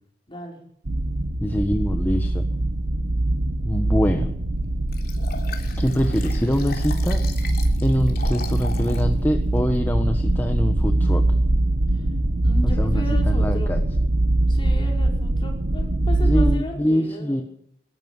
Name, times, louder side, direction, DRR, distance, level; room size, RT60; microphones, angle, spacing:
voice 1, 0.3-0.6 11.9-12.0 12.4-13.7 14.5-17.4, equal, 30° left, 1 dB, 4.9 m, -35 dB
sound 1, 0.9-16.6, right 1 dB, 65° right, 1.2 m, -22 dB
voice 2, 1.4-2.4 3.6-4.3 5.8-7.2 7.8-11.2 12.6-13.8 16.2-17.4, equal, 10° left, 5 dB, 1.4 m, -24 dB
Liquid, 4.9-9.1 9.6-9.7, left 5 dB, 60° left, 3.4 m, -38 dB
22.0 x 13.0 x 9.8 m, 0.71 s
head